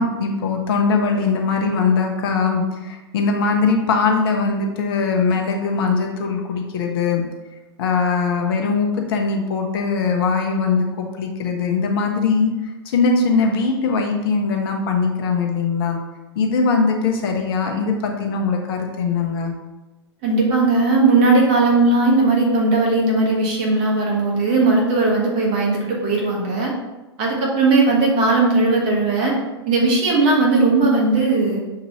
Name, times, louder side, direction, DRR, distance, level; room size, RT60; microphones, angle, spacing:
voice 1, 0.0-7.2 7.8-12.5 12.8-16.0 16.4-19.5, left 4 dB, 55° left, 2 dB, 0.9 m, -21 dB
voice 2, 20.2-26.7 27.2-29.4 29.7-31.6, right 3 dB, 40° right, -2 dB, 1.5 m, -17 dB
6.6 x 2.7 x 3.0 m, 1.1 s
hypercardioid pair, 105°, 15 cm